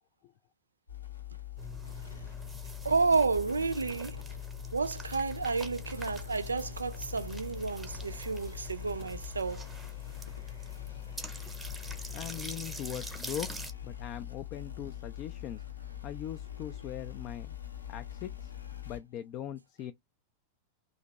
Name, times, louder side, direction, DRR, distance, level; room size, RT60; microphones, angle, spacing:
sound 1, 0.9-19.0, left 11 dB, 80° left, 0.6 m, -43 dB
sound 2, 1.6-13.7, right 2 dB, 10° right, 0.8 m, -46 dB
voice 1, 2.8-4.2 4.7-9.7, right 4 dB, 75° right, 0.3 m, -31 dB
voice 2, 12.1-15.6 16.0-17.6 17.9-18.5 18.9-19.9, left 11 dB, 40° left, 0.3 m, -41 dB
2.8 x 2.6 x 4.0 m
figure-of-eight pair, 90°, 0 cm